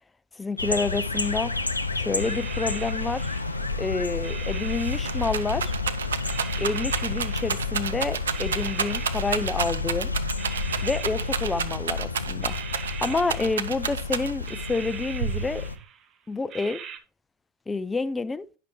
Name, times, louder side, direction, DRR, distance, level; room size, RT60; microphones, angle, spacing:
voice 1, 0.4-1.5 1.9-3.3 3.8-5.8 6.6-10.1 10.8-12.5 13.0-15.7 16.3-16.8 17.7-18.5, left 3 dB, 15° left, 0.5 m, -28 dB
sound 1, 0.6-15.8, left 4 dB, 90° left, 0.5 m, -30 dB
sound 2, 1.1-1.8 2.2-3.9 4.2-5.9 6.3-7.9 8.3-10.0 10.4-12.0 12.4-14.1 14.5-16.1 16.5-17.0, right 8 dB, 40° right, 0.7 m, -42 dB
Rattle, 4.6-14.6 15.2-15.8, right 7 dB, 75° right, 0.4 m, -30 dB
9.6 x 5.8 x 3.1 m
figure-of-eight pair, 80°, 0 cm